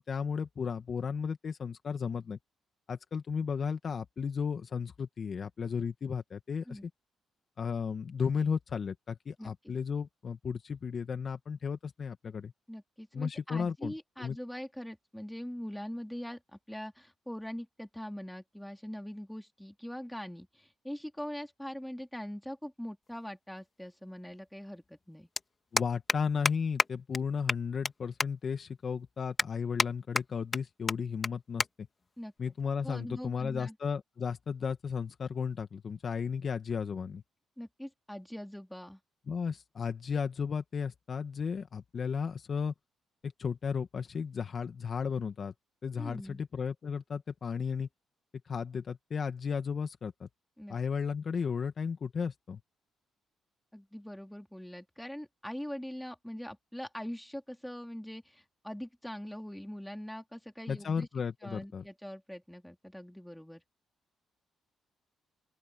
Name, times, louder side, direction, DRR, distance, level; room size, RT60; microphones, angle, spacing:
voice 1, 0.0-2.4 2.9-6.9 7.6-12.5 13.1-13.9 14.2-14.4 25.7-31.9 32.4-37.2 39.3-42.7 43.2-45.5 45.8-47.9 48.5-50.3 50.7-52.6 60.7-61.8, left 6 dB, 45° left, 1.9 m, -34 dB
voice 2, 9.4-9.7 12.7-25.3 32.2-32.3 32.8-33.7 37.6-39.0 46.0-46.4 50.6-50.8 53.7-61.1 61.4-63.6, equal, 5° left, 3.2 m, -42 dB
sound 1, 23.1-23.2 24.6-24.7 24.9-25.1 25.4-25.5 25.8-26.2 26.5-26.6 26.8-26.9 27.1-27.2 27.5-27.9 28.2-28.3 28.8-28.9 29.4-29.9 30.2-30.6 30.9-31.0 31.2-31.3 31.6-31.7 32.0-32.2 33.0-33.3, left 3 dB, 30° left, 1.8 m, -29 dB
open air
cardioid pair, 90°, 0 cm